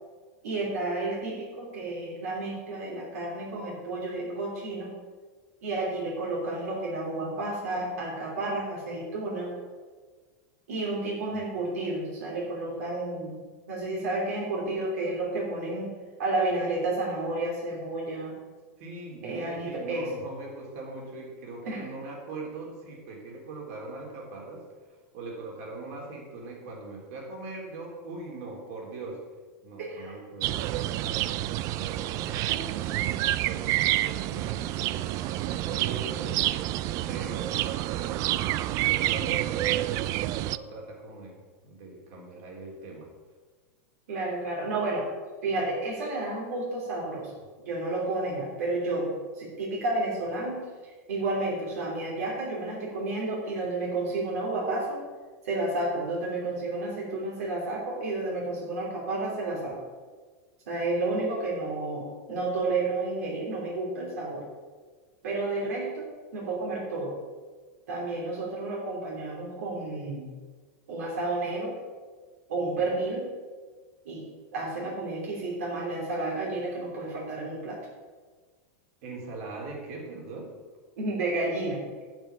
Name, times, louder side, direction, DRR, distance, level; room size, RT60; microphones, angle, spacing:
voice 1, 0.4-4.9 5.6-9.6 10.7-15.9 16.2-18.4 19.2-20.1 21.6-21.9 29.8-30.2 32.2-32.6 44.1-45.1 45.4-47.3 47.6-55.0 55.4-59.8 60.7-64.4 65.2-66.1 66.3-67.2 67.9-70.3 70.9-71.8 72.5-73.3 74.0-77.9 81.0-81.8, right 2 dB, 85° right, -3 dB, 3.0 m, -31 dB
voice 2, 18.8-24.7 25.1-29.2 29.6-36.4 37.1-38.5 38.9-41.3 41.6-43.1 79.0-80.5, right 3 dB, 60° right, -1 dB, 3.6 m, -41 dB
sound 1, 30.4-40.6, right 15 dB, 45° right, 0.4 m, -28 dB
8.9 x 7.7 x 7.1 m, 1.4 s
supercardioid pair, 130°, 8 cm